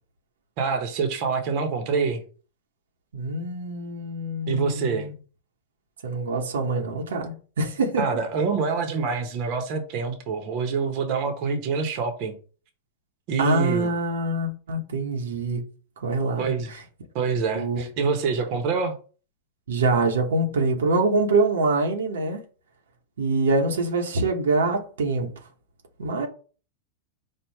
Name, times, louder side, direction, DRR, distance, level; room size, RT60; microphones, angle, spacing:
voice 1, 0.6-2.2 4.5-5.1 8.0-12.4 13.3-13.9 16.4-16.7 17.1-18.9, right 5 dB, 50° right, 1.0 m, -26 dB
voice 2, 3.1-5.1 6.0-8.2 13.4-15.6 16.0-16.8 17.5-17.8 19.7-22.4 23.2-25.3 26.0-26.3, right 2 dB, 90° right, 1.0 m, -25 dB
4.5 x 2.4 x 4.7 m
hypercardioid pair, 120°, 0 cm